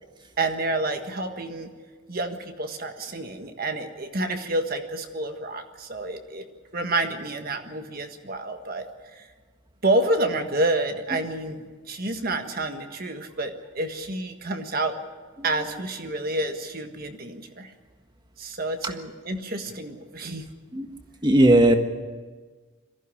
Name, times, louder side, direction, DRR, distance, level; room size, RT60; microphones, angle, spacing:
voice 1, 0.4-1.7 2.1-6.5 6.7-9.3 9.8-15.0 15.4-17.7 18.4-20.4, right 2 dB, 45° right, 6 dB, 1.6 m, -29 dB
voice 2, 21.2-21.7, right 1 dB, 20° right, 6 dB, 1.5 m, -16 dB
22.0 x 15.0 x 9.9 m, 1.4 s
head